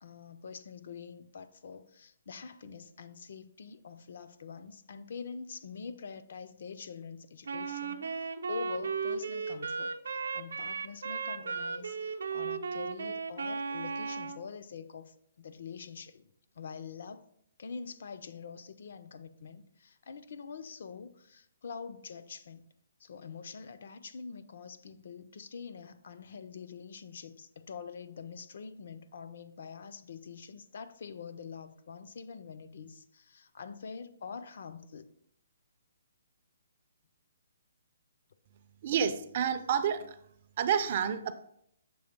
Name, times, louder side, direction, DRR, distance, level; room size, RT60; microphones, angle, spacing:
voice 1, 0.0-16.3 16.6-17.3 17.6-22.7 23.0-35.1, left 5 dB, 45° left, 10 dB, 0.4 m, -45 dB
Wind instrument woodwind instrument, 7.4-14.4, right 5 dB, 85° right, 0.6 m, -36 dB
voice 2, 38.8-40.2 40.6-41.3, right 8 dB, 30° right, 9 dB, 0.4 m, -29 dB
6.9 x 3.5 x 5.0 m, 0.70 s
hypercardioid pair, 180°, 0 cm